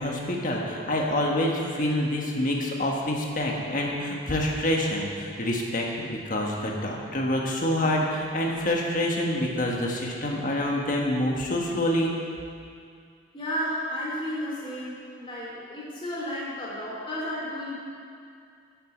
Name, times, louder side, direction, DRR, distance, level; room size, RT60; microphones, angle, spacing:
voice 1, 0.0-12.1, left 1 dB, 45° left, -1 dB, 1.5 m, -27 dB
voice 2, 13.3-17.7, equal, 25° left, -5 dB, 2.8 m, -32 dB
8.9 x 7.9 x 7.6 m, 2.3 s
head